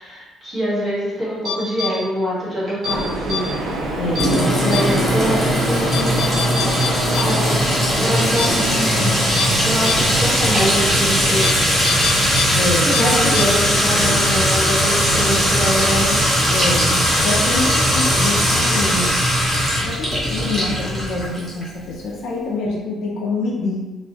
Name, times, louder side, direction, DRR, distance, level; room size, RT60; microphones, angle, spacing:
voice 1, 0.0-3.5 4.6-6.1 7.1-7.5 8.0-9.1 9.6-11.5 12.8-16.2, equal, 10° right, -11 dB, 1.0 m, -24 dB
sound 1, 1.4-1.9 2.7-2.9 3.3-3.4 4.2-4.3 4.7-4.8 5.2-5.3 5.9-7.2 7.5-7.6 8.0-8.1 8.4-8.5 8.9-9.0 9.4-9.5 9.8-9.9 10.5-10.6 11.4-11.5 11.8-12.4 12.7-13.0 13.3-13.4, left 6 dB, 40° right, 0.8 m, -24 dB
sound 2, 2.8-21.4, right 1 dB, 85° right, 0.4 m, -31 dB
voice 2, 4.0-5.0 12.5-13.4 16.5-19.2 19.8-23.8, left 2 dB, 65° left, -3 dB, 0.4 m, -25 dB
Sink (filling or washing) / Trickle dribble / Fill (with liquid), 4.2-21.6, equal, 5° left, 0.7 m, -19 dB
2.6 x 2.0 x 2.7 m, 1.1 s
cardioid pair, 170°, 0 cm